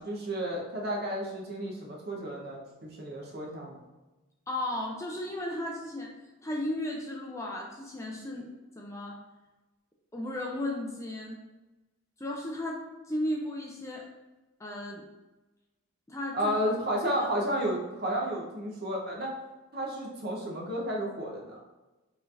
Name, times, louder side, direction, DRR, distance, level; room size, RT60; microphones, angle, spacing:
voice 1, 0.0-3.8 16.3-19.3 19.7-21.6, equal, 45° right, -2 dB, 0.8 m, -32 dB
voice 2, 4.5-6.1 6.4-8.5 8.8-9.2 10.1-11.4 12.2-12.8 13.1-14.0 14.6-15.0 16.1-16.5, left 1 dB, 15° left, -1 dB, 0.4 m, -34 dB
4.6 x 3.2 x 2.5 m, 1.1 s
head